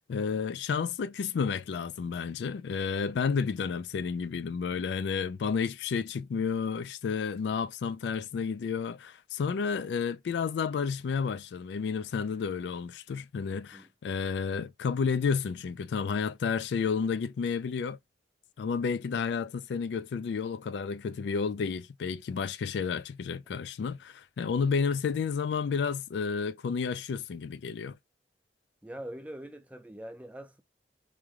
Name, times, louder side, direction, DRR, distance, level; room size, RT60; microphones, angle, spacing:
voice 1, 0.1-18.0 18.6-28.0, left 5 dB, 80° left, 0.3 m, -31 dB
voice 2, 13.5-13.9 28.8-30.6, right 1 dB, 10° right, 0.4 m, -44 dB
3.1 x 2.2 x 3.6 m
head